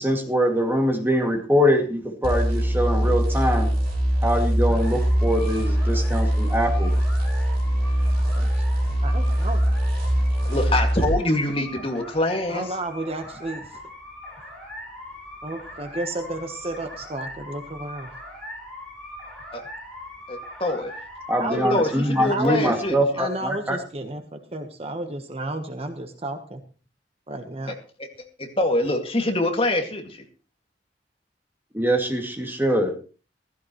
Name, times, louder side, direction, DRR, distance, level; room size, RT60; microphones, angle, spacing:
voice 1, 0.0-3.7 4.2-6.9 21.3-23.8 31.7-32.9, equal, 10° right, 3 dB, 2.4 m, -23 dB
sound 1, 2.2-11.2, equal, 55° right, 6.6 m, -22 dB
sound 2, 4.7-22.9, left 1 dB, 5° left, 5.4 m, -41 dB
voice 2, 8.2-9.6 12.5-13.7 15.4-18.1 21.4-21.8 22.3-22.6 23.2-26.6 27.3-27.7, right 2 dB, 35° right, 6 dB, 1.2 m, -32 dB
voice 3, 10.5-12.8 19.5-19.6 20.3-20.9 21.5-23.0 28.0-28.1 28.4-30.2, left 1 dB, 30° left, 3 dB, 2.3 m, -25 dB
15.5 x 15.5 x 3.2 m, 0.37 s
head